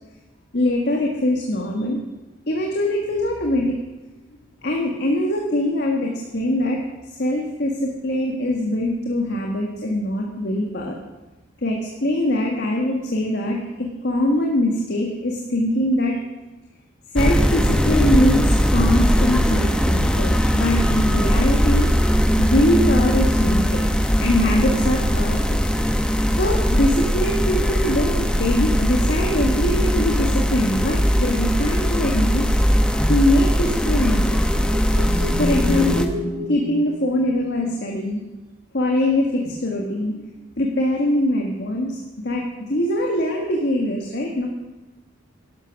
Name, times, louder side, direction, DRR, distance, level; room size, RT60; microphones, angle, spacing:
voice 1, 0.5-2.0 2.5-3.8 4.6-6.8 7.2-11.0 11.6-16.2 17.1-21.9 22.4-23.8 24.1-25.6 26.4-32.6 33.1-34.4 35.1-36.2 36.5-38.2 38.7-40.2 40.6-44.5, left 1 dB, 55° left, 0 dB, 1.6 m, -22 dB
sound 1, 17.2-36.1, equal, 5° left, 0.8 m, -19 dB
sound 2, 34.5-37.7, left 1 dB, 30° right, 4.3 m, -29 dB
11.5 x 11.5 x 6.0 m, 1.1 s
head